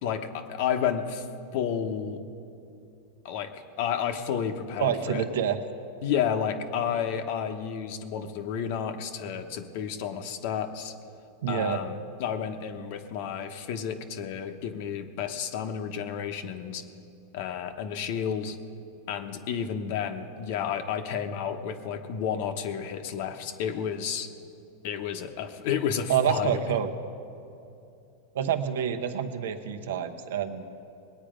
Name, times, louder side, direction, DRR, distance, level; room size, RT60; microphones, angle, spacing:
voice 1, 0.0-1.3 1.5-2.2 3.2-5.2 6.0-10.9 11.5-16.8 17.3-18.6 19.1-24.3 24.8-26.6, left 8 dB, 60° left, 7 dB, 0.9 m, -31 dB
voice 2, 4.8-5.6 11.4-11.8 26.1-26.9 28.3-30.7, right 8 dB, 80° right, 7 dB, 0.9 m, -27 dB
20.0 x 9.0 x 5.1 m, 2.6 s
supercardioid pair, 135°, 0 cm